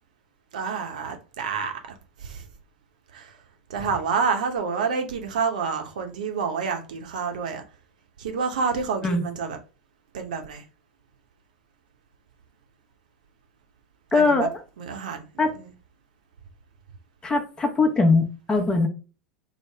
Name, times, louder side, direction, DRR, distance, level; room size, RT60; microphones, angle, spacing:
voice 1, 0.5-1.7 2.2-2.4 3.1-3.3 3.7-7.6 8.2-9.6 10.1-10.6 14.1-14.5 14.8-15.7, right 5 dB, 70° right, 0.7 m, -28 dB
voice 2, 14.1-14.5 15.4-15.5 17.2-18.9, left 3 dB, 15° left, 0.8 m, -21 dB
3.2 x 2.0 x 3.2 m
figure-of-eight pair, 85°, 4 cm